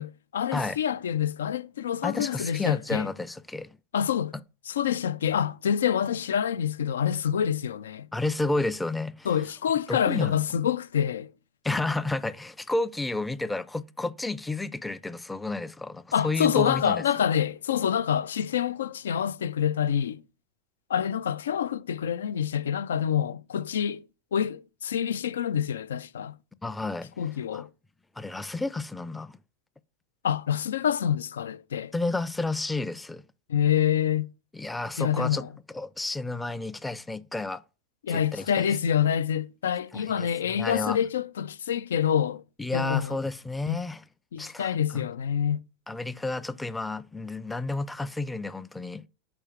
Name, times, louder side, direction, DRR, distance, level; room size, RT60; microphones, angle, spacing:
voice 1, 0.0-3.1 3.9-4.3 4.7-8.1 9.2-11.3 16.1-20.2 20.9-24.1 24.3-26.4 27.2-27.7 30.2-31.9 33.5-34.3 35.0-35.5 38.0-42.4 42.7-43.2 43.7-43.8 44.3-45.6, left 9 dB, 80° left, 0.3 m, -27 dB
voice 2, 2.0-3.8 8.1-9.3 9.9-10.4 11.6-17.0 26.6-27.1 27.5-27.6 28.2-29.4 31.9-33.2 34.5-35.4 35.7-37.6 38.1-38.7 39.9-41.0 42.6-44.0 44.4-45.1 45.9-49.0, left 2 dB, 10° left, 0.4 m, -31 dB
4.8 x 4.5 x 5.0 m
hypercardioid pair, 90°, 0 cm